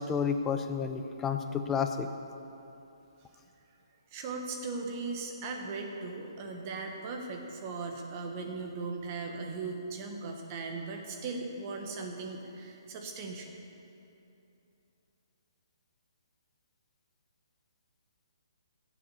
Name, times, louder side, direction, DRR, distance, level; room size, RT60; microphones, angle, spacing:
voice 1, 0.0-2.1, left 6 dB, 10° left, 7 dB, 0.5 m, -31 dB
voice 2, 4.1-13.6, right 3 dB, 25° right, 2 dB, 1.2 m, -38 dB
13.5 x 7.7 x 7.1 m, 2.8 s
hypercardioid pair, 165°, 3 cm